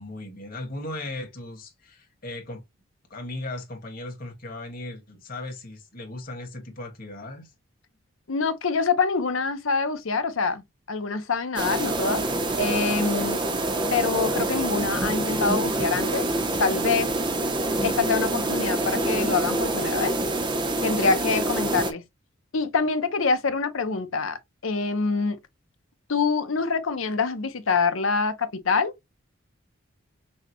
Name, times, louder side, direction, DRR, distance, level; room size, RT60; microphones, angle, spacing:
voice 1, 0.0-2.6 3.1-7.5, left 2 dB, 45° left, 1.7 m, -37 dB
voice 2, 8.3-10.6 10.9-12.2 12.6-13.4 13.9-16.3 16.6-17.1 17.8-20.1 20.8-22.0 22.5-25.4 26.1-28.9, left 4 dB, 80° left, 0.7 m, -25 dB
sound 1, 11.6-21.9, right 2 dB, 25° right, 0.6 m, -26 dB
6.2 x 2.2 x 2.9 m
head